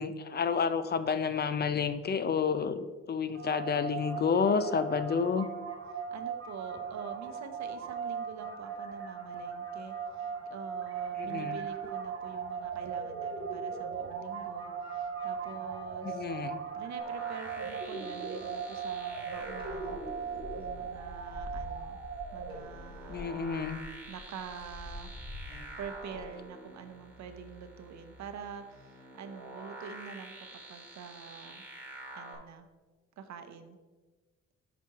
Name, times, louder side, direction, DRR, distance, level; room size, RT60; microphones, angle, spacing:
voice 1, 0.0-5.5 11.2-11.6 16.0-16.6 23.1-23.8, left 6 dB, 35° left, 11 dB, 0.5 m, -30 dB
sound 1, 3.3-22.6, right 6 dB, 45° right, 1.7 m, -38 dB
voice 2, 6.1-16.2 16.7-20.0 20.6-22.0 22.3-23.4 24.1-25.1 25.8-31.7 32.1-32.7 33.2-33.8, right 6 dB, 65° right, 8 dB, 0.8 m, -46 dB
sound 2, 17.0-32.4, right 1 dB, 5° right, 2.4 m, -48 dB
sound 3, 19.4-26.4, left 2 dB, 15° left, 2.2 m, -47 dB
8.1 x 6.0 x 2.9 m, 1.3 s
cardioid pair, 90°, 30 cm